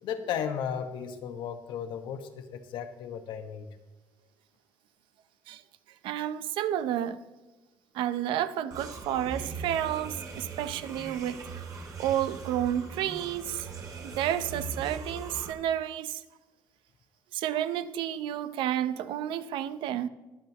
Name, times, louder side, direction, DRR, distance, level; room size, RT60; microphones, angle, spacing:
voice 1, 0.0-3.7, left 8 dB, 75° left, 1.3 m, -35 dB
voice 2, 6.0-7.2 7.9-11.6 12.0-13.7 14.0-16.2 17.3-20.1, right 11 dB, 80° right, 0.7 m, -31 dB
sound 1, 8.7-15.5, right 4 dB, 45° right, 2.0 m, -40 dB
22.0 x 7.8 x 3.0 m
cardioid pair, 120°, 8 cm